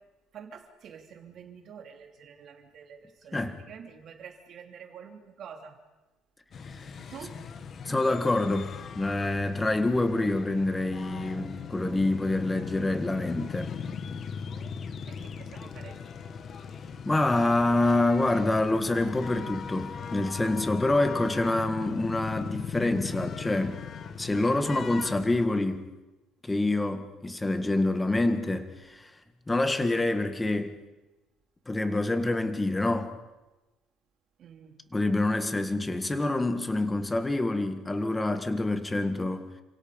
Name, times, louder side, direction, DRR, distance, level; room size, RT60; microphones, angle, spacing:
voice 1, 0.3-3.4 3.7-5.8 7.1-7.4 15.1-16.0 34.4-34.8, right 7 dB, 40° right, 3.4 m, -47 dB
sound 1, 6.5-25.5, left 6 dB, 35° left, 1.3 m, -39 dB
voice 2, 7.9-13.7 17.0-23.8 24.2-25.9 26.4-29.1 29.5-30.7 31.7-33.1 34.9-39.5, left 2 dB, 10° left, 1.7 m, -26 dB
29.5 x 27.0 x 5.3 m
cardioid pair, 165°, 0 cm